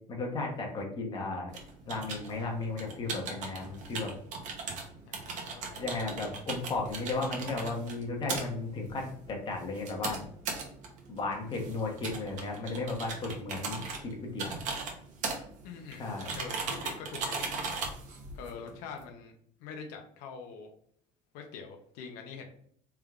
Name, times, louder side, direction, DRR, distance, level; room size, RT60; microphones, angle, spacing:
voice 1, 0.1-1.5 1.9-4.1 5.8-10.2 11.1-14.6 16.0-16.3, left 3 dB, 30° left, 0 dB, 0.9 m, -35 dB
sound 1, 1.5-19.0, right 4 dB, 60° right, 0.9 m, -39 dB
voice 2, 5.1-5.8 15.6-16.0 16.3-17.4 18.3-19.3 19.6-20.7 21.3-22.5, left 5 dB, 85° left, 3 dB, 0.6 m, -44 dB
3.5 x 3.4 x 2.3 m, 0.65 s
cardioid pair, 130°, 15 cm